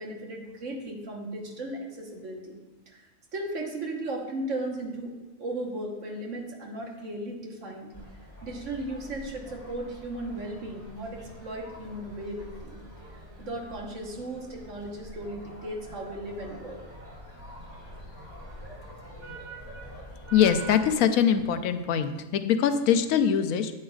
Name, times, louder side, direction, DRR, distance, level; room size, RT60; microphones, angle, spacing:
voice 1, 0.0-2.6 2.9-12.8 13.4-16.8, right 1 dB, 65° right, 1 dB, 1.6 m, -36 dB
sound 1, 7.9-21.0, right 1 dB, 20° right, 2.0 m, -45 dB
voice 2, 20.3-23.7, left 8 dB, 90° left, 9 dB, 1.0 m, -23 dB
9.6 x 8.7 x 2.4 m, 1.2 s
omnidirectional pair, 1.4 m